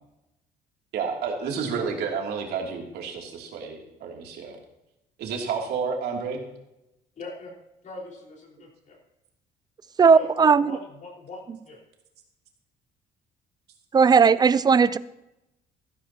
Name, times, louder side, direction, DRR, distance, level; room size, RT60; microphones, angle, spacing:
voice 1, 0.9-4.6 5.2-6.4, right 5 dB, 70° right, 0 dB, 2.8 m, -30 dB
voice 2, 7.1-7.5 7.8-9.0 10.1-11.8, left 2 dB, 50° left, -1 dB, 4.7 m, -41 dB
voice 3, 10.0-10.7 13.9-15.0, right 5 dB, 25° right, 17 dB, 0.5 m, -17 dB
14.5 x 14.0 x 2.9 m, 0.90 s
cardioid pair, 110°, 17 cm